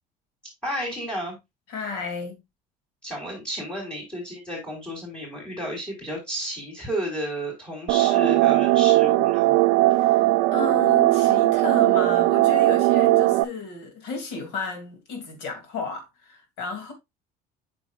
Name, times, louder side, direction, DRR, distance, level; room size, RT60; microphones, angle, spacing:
voice 1, 0.6-1.4 3.0-9.5, equal, 5° left, 3.5 m, -32 dB
voice 2, 1.7-2.4 9.9-16.9, left 4 dB, 75° left, 2.6 m, -33 dB
sound 1, 7.9-13.4, right 18 dB, 85° right, 0.5 m, -19 dB
8.4 x 6.2 x 2.4 m
cardioid pair, 150°, 17 cm